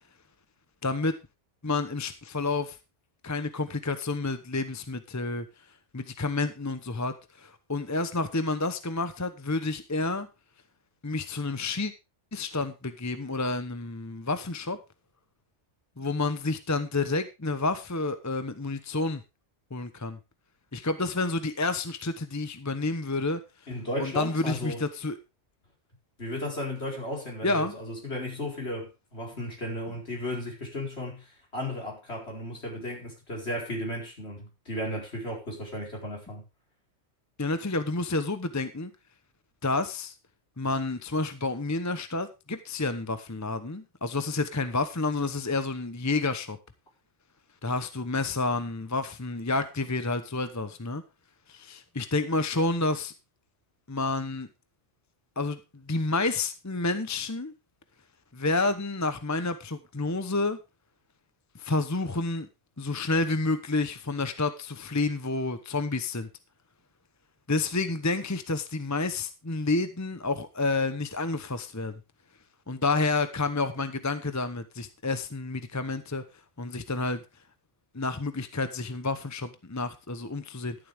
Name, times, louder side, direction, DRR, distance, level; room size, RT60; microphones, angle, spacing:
voice 1, 0.8-1.1 1.6-2.8 3.2-5.4 5.9-10.3 11.0-11.9 12.3-14.8 16.0-19.2 19.7-20.2 20.7-23.4 24.0-25.2 27.4-27.7 37.4-38.9 39.6-40.1 40.6-46.6 47.6-51.0 51.5-53.1 53.9-54.5 55.4-55.6 55.9-57.5 58.3-60.6 61.5-62.5 62.8-66.3 67.5-71.9 72.7-76.2 76.6-77.2 77.9-80.8, left 3 dB, 15° left, 0.8 m, -29 dB
voice 2, 23.7-24.8 26.2-31.2 31.5-36.4, left 1 dB, 60° left, 4.8 m, -34 dB
12.0 x 11.0 x 3.5 m
omnidirectional pair, 1.2 m